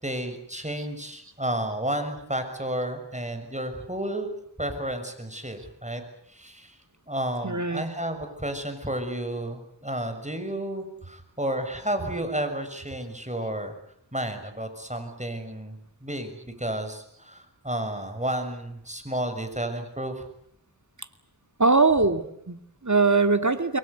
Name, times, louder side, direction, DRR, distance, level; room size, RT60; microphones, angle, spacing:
voice 1, 0.0-4.3 4.6-6.0 6.3-6.8 7.1-13.7 14.1-15.7 16.0-20.3, right 1 dB, 15° right, 7 dB, 6.5 m, -32 dB
voice 2, 7.4-7.8 21.6-23.8, right 3 dB, 40° right, 8 dB, 2.5 m, -22 dB
28.0 x 22.0 x 8.2 m, 0.74 s
wide cardioid pair, 40°, 42 cm